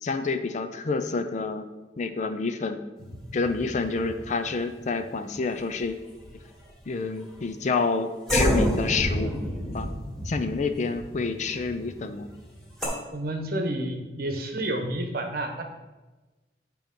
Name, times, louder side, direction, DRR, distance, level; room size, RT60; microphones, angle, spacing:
voice 1, 0.0-1.7 2.0-2.8 3.3-5.9 6.9-9.3 9.7-9.9 10.2-12.3, left 4 dB, 40° left, 9 dB, 0.5 m, -28 dB
sound 1, 3.0-5.8 6.1-6.7 7.3-7.5 8.3-12.9, equal, ahead, 2.0 m, -30 dB
voice 2, 13.1-15.6, right 1 dB, 55° right, 4 dB, 0.9 m, -30 dB
8.8 x 3.0 x 5.2 m, 1.2 s
head